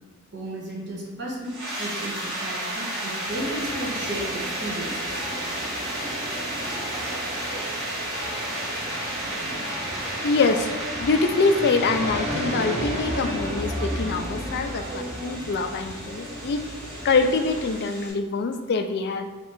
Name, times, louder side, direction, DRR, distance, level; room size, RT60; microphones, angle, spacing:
voice 1, 0.3-5.2, right 1 dB, 50° right, -4 dB, 1.2 m, -34 dB
sound 1, 1.4-18.1, right 1 dB, 75° right, 1.2 m, -33 dB
sound 2, 3.2-17.8, equal, 30° right, 0.9 m, -34 dB
voice 2, 10.2-10.7 11.0-16.6 17.0-19.3, left 4 dB, 50° left, 7 dB, 0.3 m, -24 dB
3.2 x 2.8 x 4.5 m, 1.3 s
head